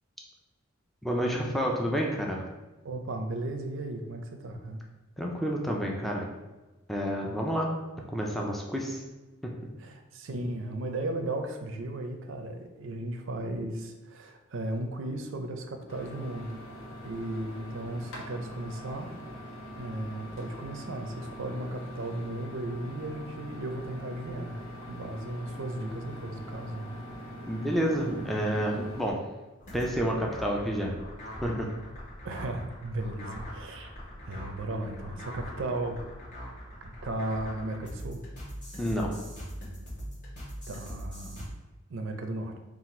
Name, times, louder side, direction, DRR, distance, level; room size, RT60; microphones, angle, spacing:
voice 1, 1.0-2.4 5.2-6.3 6.9-7.7 8.1-9.0 9.4-9.5 27.5-29.2 29.7-31.0 31.4-31.7 38.8-39.2, equal, ahead, -1 dB, 0.4 m, -29 dB
voice 2, 2.8-4.8 9.8-16.6 17.0-19.1 19.8-24.6 24.9-27.0 32.2-33.9 34.3-36.0 36.8-38.2 40.7-41.5 41.9-42.6, right 2 dB, 65° right, 5 dB, 0.5 m, -35 dB
sound 1, 15.9-29.1, equal, 70° left, 1.1 m, -43 dB
sound 2, 29.6-41.5, equal, 40° left, 1.4 m, -41 dB
4.1 x 2.4 x 4.2 m, 1.1 s
head